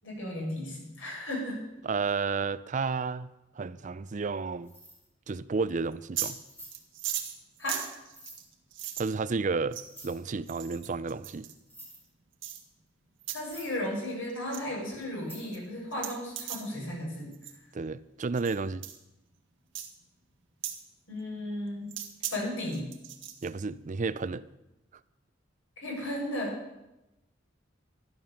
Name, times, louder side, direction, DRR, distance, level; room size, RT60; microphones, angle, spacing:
voice 1, 0.0-1.6 7.6-7.8 13.3-17.3 21.1-21.9 22.3-22.8 25.8-26.6, left 1 dB, 90° left, -2 dB, 6.7 m, -34 dB
voice 2, 1.8-4.7 5.3-6.4 9.0-11.5 17.7-18.8 23.4-24.4, right 4 dB, 40° right, 16 dB, 0.4 m, -32 dB
sound 1, 4.2-4.4 4.6-5.0 5.5-5.6 6.4-6.8 7.9-8.4 9.8-10.2 11.2-11.3 11.5-12.0 12.9-13.0 13.3-13.8 15.2-15.5, right 1 dB, 10° left, 5.2 m, -50 dB
sound 2, 5.9-6.4 6.7-9.1 9.7-10.1 10.5-11.5 12.4-12.6 13.2-13.4 13.7-14.0 14.3-14.6 15.0-15.1 15.5-15.6 15.9-16.7 17.3-17.6 18.3-18.6 18.8-19.0 19.7-19.9 20.6-20.8 21.9-22.3 22.7-23.5, right 11 dB, 70° right, 1.7 m, -37 dB
13.0 x 11.0 x 7.0 m, 0.94 s
head